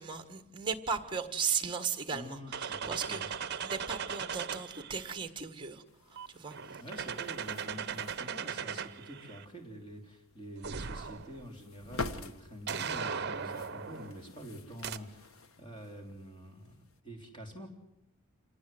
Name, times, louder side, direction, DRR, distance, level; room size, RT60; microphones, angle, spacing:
voice 1, 0.0-6.8, right 6 dB, 20° right, 8 dB, 1.5 m, -37 dB
voice 2, 2.1-3.3 6.8-17.7, equal, 20° left, 3 dB, 3.5 m, -47 dB
sound 1, 2.5-5.2 6.2-9.5 10.6-11.5 12.7-14.2 14.8-15.0, right 6 dB, 45° right, 0.8 m, -38 dB
sound 2, 5.8-17.0, left 3 dB, 70° left, 1.2 m, -48 dB
27.0 x 19.0 x 7.9 m, 0.87 s
head